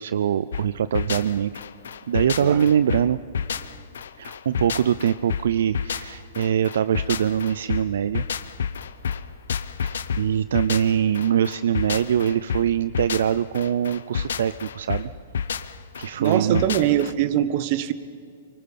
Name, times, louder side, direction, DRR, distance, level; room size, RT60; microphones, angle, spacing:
voice 1, 0.0-1.5 2.1-3.2 4.2-8.2 9.8-15.1 16.0-16.6, right 9 dB, 70° right, 15 dB, 0.4 m, -23 dB
sound 1, 0.5-17.1, left 7 dB, 75° left, 0.8 m, -30 dB
voice 2, 16.2-17.9, right 12 dB, 50° right, 14 dB, 1.1 m, -23 dB
25.0 x 23.5 x 5.5 m, 2.5 s
hypercardioid pair, 120°, 0 cm